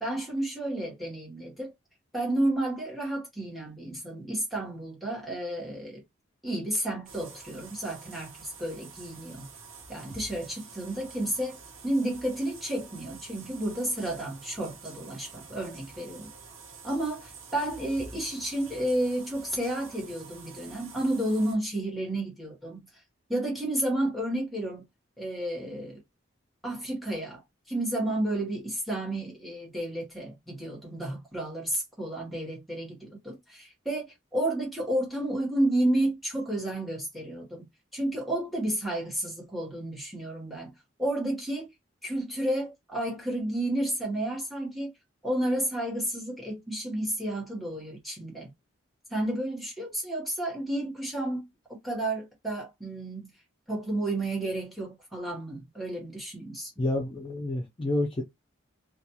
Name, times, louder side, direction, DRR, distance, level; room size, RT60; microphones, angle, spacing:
voice 1, 0.0-1.7 2.1-6.0 6.4-9.5 9.9-11.6 11.8-16.3 16.8-22.8 23.3-24.9 25.2-26.0 26.6-27.4 27.7-34.1 34.3-37.7 37.9-40.7 41.0-41.7 42.0-44.9 45.2-48.5 49.1-51.4 51.8-53.3 53.7-56.7, right 1 dB, ahead, 1.0 m, -31 dB
sound 1, 7.1-21.6, right 5 dB, 80° right, 0.8 m, -48 dB
voice 2, 56.8-58.2, left 1 dB, 25° left, 0.4 m, -29 dB
2.4 x 2.2 x 2.9 m
head